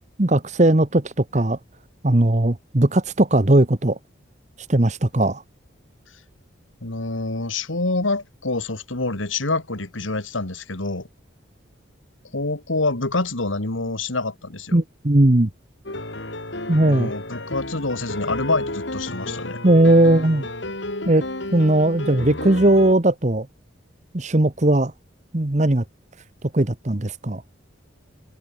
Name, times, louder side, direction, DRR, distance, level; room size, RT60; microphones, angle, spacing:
voice 1, 0.2-1.6 2.0-4.0 4.6-5.4 14.7-15.5 16.7-17.1 19.6-20.4 21.0-21.2 21.5-23.5 24.1-24.9 25.3-25.8 26.4-27.4, right 1 dB, 35° right, 1.1 m, -18 dB
voice 2, 6.8-11.1 12.3-14.8 16.8-19.6, left 2 dB, 85° left, 2.8 m, -26 dB
sound 1, 15.9-22.9, left 1 dB, 70° left, 5.4 m, -31 dB
head